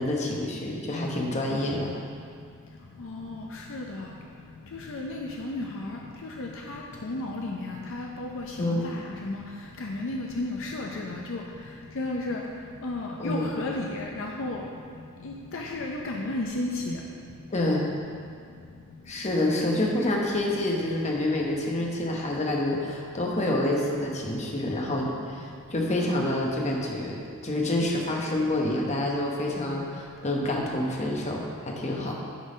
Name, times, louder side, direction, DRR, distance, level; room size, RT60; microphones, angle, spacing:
voice 1, 0.0-2.0 8.6-8.9 13.2-13.6 17.5-17.9 19.1-32.1, left 1 dB, 30° left, -1 dB, 1.0 m, -27 dB
voice 2, 3.0-3.4 3.7-4.1 4.7-6.0 6.4-9.4 9.8-11.4 12.0-12.4 12.8-14.6 15.2-17.0, left 2 dB, 60° left, 0 dB, 0.6 m, -33 dB
10.0 x 4.0 x 5.2 m, 2.3 s
head